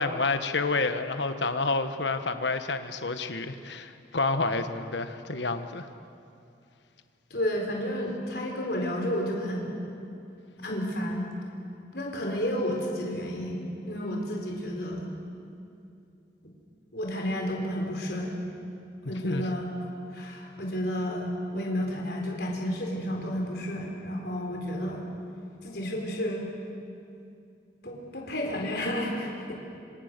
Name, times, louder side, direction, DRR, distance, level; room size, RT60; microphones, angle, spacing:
voice 1, 0.0-5.9 19.0-19.5, left 3 dB, 75° left, 9 dB, 1.3 m, -29 dB
voice 2, 7.3-9.8 10.6-11.2 11.9-15.1 16.9-18.4 19.0-19.7 20.1-25.0 25.6-26.5 27.8-29.6, equal, 60° left, 0 dB, 4.3 m, -31 dB
27.0 x 26.0 x 6.8 m, 2.6 s
head